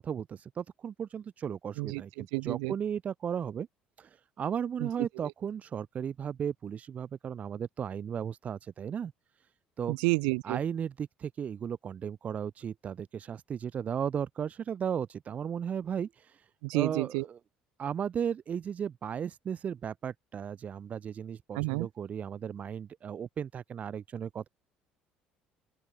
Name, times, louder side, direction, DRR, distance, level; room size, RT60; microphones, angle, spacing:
voice 1, 0.0-3.7 4.0-4.1 4.4-9.1 9.8-10.0 10.4-16.4 16.7-17.4 17.8-24.5, right 8 dB, 45° right, 1.6 m, -35 dB
voice 2, 1.8-2.7 4.8-4.9 5.2-5.3 9.9-10.6 16.6-17.3 21.5-21.9, right 35 dB, 80° right, 2.3 m, -30 dB
open air
supercardioid pair, 75°, 4 cm